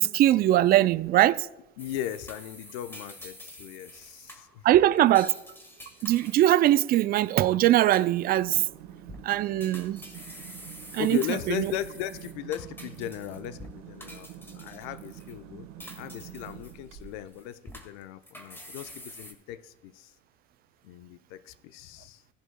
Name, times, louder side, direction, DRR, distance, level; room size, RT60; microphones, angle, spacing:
voice 1, 0.0-1.5 4.6-5.3 6.0-8.7 9.2-10.0 10.9-11.7, right 14 dB, 25° right, 0.3 m, -21 dB
voice 2, 1.8-4.6 11.0-15.7 16.0-20.1 20.8-22.2, left 12 dB, 60° left, 0.9 m, -37 dB
sound 1, 1.8-7.3 7.6-8.4 8.9-9.2 9.6-13.7 14.0-15.4 15.8-17.0 17.3-19.3, left 1 dB, 5° left, 1.8 m, -47 dB
sound 2, 8.2-17.4, right 11 dB, 50° right, 1.6 m, -46 dB
17.5 x 11.0 x 2.2 m
hypercardioid pair, 90°, 38 cm